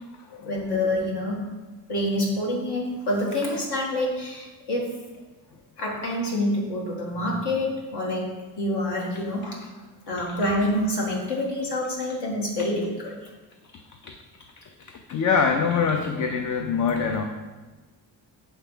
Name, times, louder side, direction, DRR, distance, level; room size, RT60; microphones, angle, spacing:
voice 1, 0.5-1.4 1.9-4.9 5.8-8.3 8.6-9.7 10.1-13.2, left 1 dB, 65° left, -2 dB, 1.9 m, -27 dB
voice 2, 15.1-17.2, left 5 dB, 45° left, 4 dB, 0.6 m, -24 dB
7.3 x 3.5 x 5.5 m, 1.2 s
cardioid pair, 120°, 42 cm